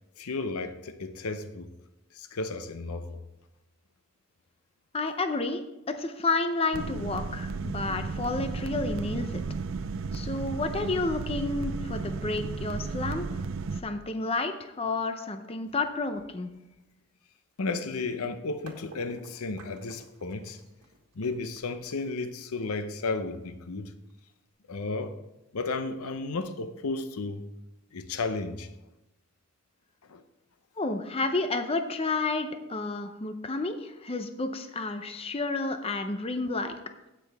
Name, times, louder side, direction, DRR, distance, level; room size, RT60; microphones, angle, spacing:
voice 1, 0.2-1.7 2.1-3.2 17.6-20.6 21.2-23.9 24.7-25.2 25.5-27.5 27.9-28.7 30.1-30.2, left 3 dB, 85° left, 0.7 m, -33 dB
voice 2, 4.9-9.4 10.1-13.4 13.7-16.5 30.8-36.7, left 3 dB, 25° left, 0.6 m, -31 dB
sound 1, 6.7-13.8, right 4 dB, 65° right, 0.5 m, -34 dB
sound 2, 18.7-24.5, right 2 dB, 80° right, 1.7 m, -53 dB
16.0 x 6.2 x 3.4 m
head